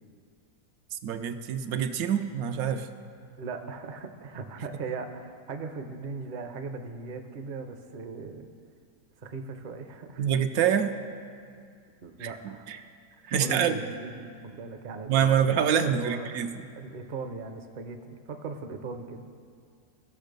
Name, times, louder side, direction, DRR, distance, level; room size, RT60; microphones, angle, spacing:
voice 1, 0.9-2.9 10.2-10.9 12.2-12.8 13.2-13.8 15.1-16.5, right 8 dB, 80° right, 8 dB, 1.0 m, -26 dB
voice 2, 3.4-8.5 9.2-10.3 12.0-12.7 13.3-15.4 15.7-16.3 16.8-19.3, right 4 dB, 50° right, 6 dB, 0.6 m, -38 dB
15.0 x 6.3 x 5.2 m, 2.3 s
omnidirectional pair, 1.5 m